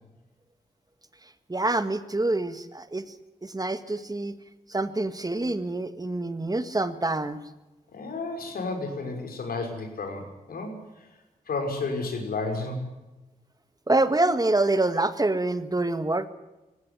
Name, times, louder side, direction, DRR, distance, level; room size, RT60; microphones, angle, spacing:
voice 1, 1.5-3.1 3.4-4.3 4.7-7.4 13.9-16.3, right 2 dB, 25° right, 11 dB, 1.8 m, -26 dB
voice 2, 7.9-11.2 11.5-12.9, left 3 dB, 80° left, 4 dB, 5.5 m, -32 dB
19.0 x 16.5 x 9.6 m, 1.0 s
cardioid pair, 50°, 15 cm